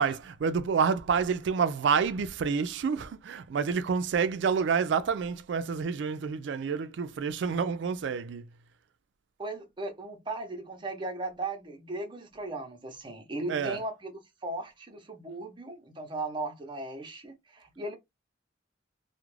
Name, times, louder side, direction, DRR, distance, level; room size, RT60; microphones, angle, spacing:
voice 1, 0.0-8.4 13.5-13.8, right 6 dB, 65° right, 0.3 m, -28 dB
voice 2, 9.4-18.0, right 2 dB, 25° right, 0.6 m, -37 dB
2.4 x 2.1 x 3.1 m
head